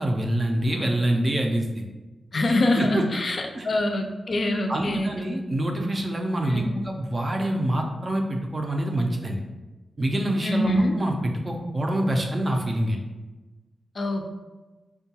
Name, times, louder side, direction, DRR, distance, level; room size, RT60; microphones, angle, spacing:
voice 1, 0.0-1.8 2.8-3.0 3.5-3.7 4.7-9.4 10.0-13.0, right 1 dB, 30° right, 2 dB, 0.4 m, -26 dB
voice 2, 2.3-5.1 6.5-6.8 10.4-11.0 14.0-14.2, left 1 dB, 45° left, 2 dB, 0.3 m, -24 dB
4.5 x 2.2 x 2.8 m, 1.2 s
wide cardioid pair, 160°, 0 cm